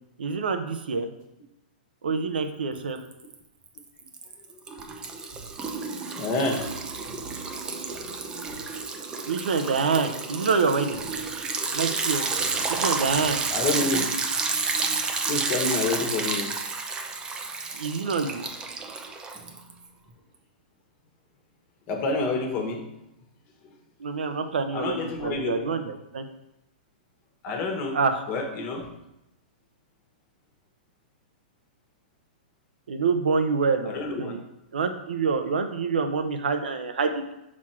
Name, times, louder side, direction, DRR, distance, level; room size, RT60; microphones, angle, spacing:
voice 1, 0.2-1.1 2.0-3.0 9.2-11.0 11.7-12.3 12.7-13.4 17.8-18.4 24.0-26.2 27.9-28.2 32.9-34.5 34.7-37.3, right 4 dB, 85° right, 7 dB, 0.7 m, -26 dB
Liquid, 2.7-3.3 3.7-19.8, right 4 dB, 15° right, 0.6 m, -30 dB
voice 2, 4.5-4.8 6.2-6.6 13.1-13.2 13.5-14.0 15.2-16.5 21.9-22.8 23.6-23.7 24.7-25.6 27.4-28.0 28.3-28.9 33.8-34.3, left 3 dB, 35° left, 2 dB, 1.4 m, -28 dB
5.9 x 4.2 x 4.3 m, 0.88 s
hypercardioid pair, 140°, 5 cm